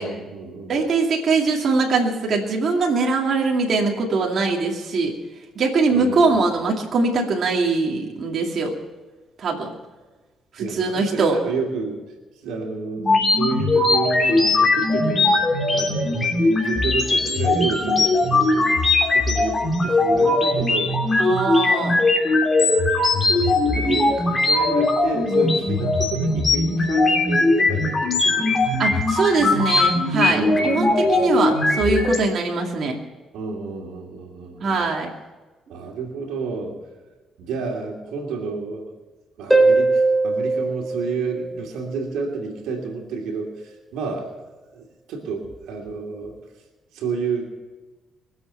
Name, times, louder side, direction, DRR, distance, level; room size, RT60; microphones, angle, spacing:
voice 1, 0.0-0.8 5.9-6.3 10.6-12.0 12.4-15.4 15.7-21.0 21.3-21.4 23.3-28.6 30.3-31.4 33.3-34.8 35.7-36.8 37.4-38.9 39.4-44.3 44.7-46.3 46.9-47.5, right 4 dB, 90° right, 1 dB, 2.8 m, -30 dB
voice 2, 0.7-5.1 5.6-8.7 9.4-9.7 10.5-11.4 21.2-22.0 28.8-33.0 34.6-35.1, right 4 dB, 55° right, -1 dB, 2.4 m, -22 dB
sound 1, 13.0-32.2, left 2 dB, 30° left, 3.3 m, -20 dB
Harp, 39.5-42.0 45.5-45.6, right 3 dB, 5° right, 3.3 m, -20 dB
23.0 x 7.9 x 5.7 m, 1.2 s
cardioid pair, 90°, 0 cm